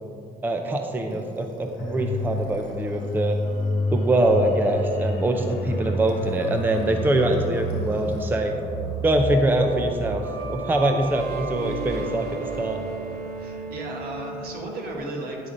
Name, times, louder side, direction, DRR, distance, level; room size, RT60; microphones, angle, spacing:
voice 1, 0.4-3.4 3.9-8.5 9.0-12.8, right 1 dB, 10° right, 4 dB, 0.5 m, -23 dB
sound 1, 1.1-8.3 8.5-15.0, right 5 dB, 90° right, 0.9 m, -39 dB
sound 2, 1.8-14.1 14.4-14.6, left 2 dB, 90° left, 1.0 m, -31 dB
voice 2, 13.4-15.5, right 2 dB, 65° right, 0 dB, 1.4 m, -35 dB
9.8 x 3.6 x 5.1 m, 2.6 s
cardioid pair, 110°, 17 cm